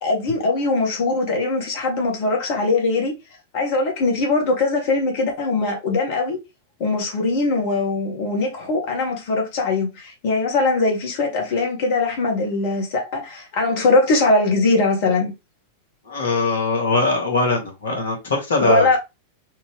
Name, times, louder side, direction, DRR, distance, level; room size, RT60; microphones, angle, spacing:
voice 1, 0.0-3.1 3.5-6.4 6.8-15.3 18.6-19.0, left 3 dB, 50° left, 1.8 m, -21 dB
voice 2, 16.1-19.0, left 3 dB, 65° left, 2.0 m, -21 dB
4.4 x 2.8 x 3.5 m
figure-of-eight pair, 90°, 0 cm